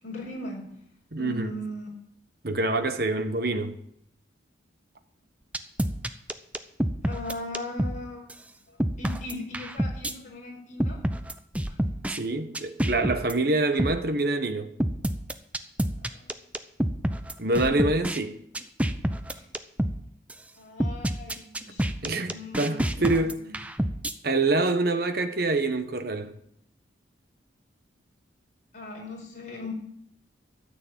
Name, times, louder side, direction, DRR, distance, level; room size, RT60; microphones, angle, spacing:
voice 1, 0.0-0.8 1.2-1.9 7.0-8.3 8.7-11.0 11.7-11.8 13.7-13.8 16.0-16.3 19.3-19.5 20.6-21.9 22.3-23.5 28.7-29.7, left 2 dB, 40° left, 5.0 m, -39 dB
voice 2, 1.1-1.6 2.4-3.8 12.1-14.7 17.4-18.4 22.0-23.4 24.2-26.4, right 2 dB, 50° right, 1.1 m, -26 dB
sound 1, 5.5-8.0 8.3-8.4 8.8-10.1 10.8-12.2 12.5-13.3 13.8-14.0 14.8-18.2 18.5-20.0 20.3-20.4 20.8-24.1, equal, 5° right, 0.6 m, -28 dB
13.0 x 6.8 x 8.8 m
head